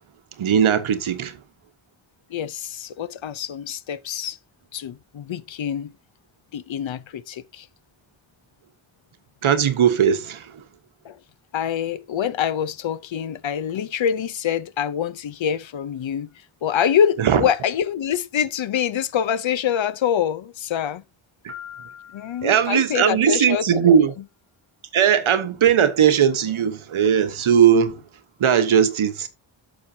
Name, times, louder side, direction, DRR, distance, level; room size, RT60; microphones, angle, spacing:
voice 1, 0.4-1.4 9.4-10.6 17.2-17.5 21.4-21.5 22.4-24.1 24.9-28.0 28.4-29.3, right 8 dB, 90° right, 1.2 m, -18 dB
voice 2, 2.3-4.4 4.7-5.9 6.5-7.7 11.0-11.2 11.5-16.3 16.6-21.0 22.1-24.1, left 9 dB, 70° left, 0.7 m, -25 dB
Piano, 21.5-23.4, left 8 dB, 35° left, 2.8 m, -43 dB
13.0 x 6.4 x 2.8 m
wide cardioid pair, 115°, 47 cm